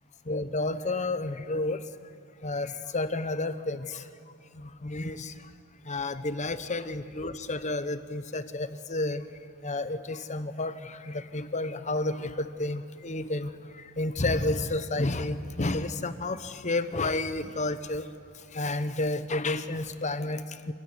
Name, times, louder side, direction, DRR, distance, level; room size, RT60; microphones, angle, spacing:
voice 1, 0.2-1.9 2.4-4.1 4.5-5.5 5.8-9.3 9.6-18.1 18.3-20.7, left 2 dB, 35° left, 12 dB, 0.9 m, -31 dB
26.0 x 16.0 x 9.7 m, 2.3 s
head